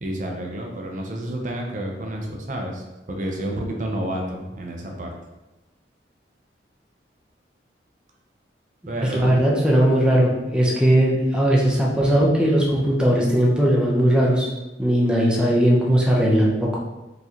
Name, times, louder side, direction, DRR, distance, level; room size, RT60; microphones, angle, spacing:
voice 1, 0.0-5.1 8.9-9.3 11.6-12.0, right 1 dB, 45° right, 0 dB, 0.6 m, -30 dB
voice 2, 9.0-14.5 14.8-16.8, equal, 5° right, -4 dB, 0.7 m, -18 dB
4.5 x 3.2 x 2.9 m, 1.0 s
head